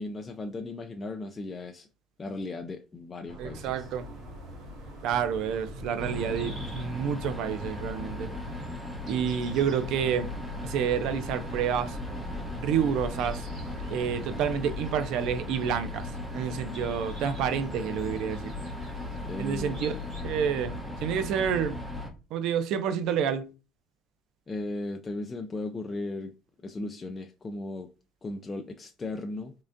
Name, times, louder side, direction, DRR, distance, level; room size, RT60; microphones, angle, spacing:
voice 1, 0.0-1.9 2.2-3.9 19.3-20.1 24.5-26.3 26.6-27.9 28.2-29.5, left 2 dB, 25° left, 0.4 m, -36 dB
sound 1, 3.3-8.7 10.1-14.8, right 2 dB, 85° right, 1.4 m, -44 dB
voice 2, 3.4-4.1 5.0-8.3 9.1-10.3 10.6-12.0 12.6-13.4 13.9-16.1 16.3-18.5 19.4-20.7 21.0-21.8 22.3-23.5, right 8 dB, 70° right, 0.5 m, -29 dB
sound 2, 3.7-20.2, equal, 45° right, 2.2 m, -51 dB
sound 3, 6.0-22.1, left 2 dB, 5° right, 0.9 m, -37 dB
3.7 x 3.2 x 2.5 m
supercardioid pair, 90°, 0 cm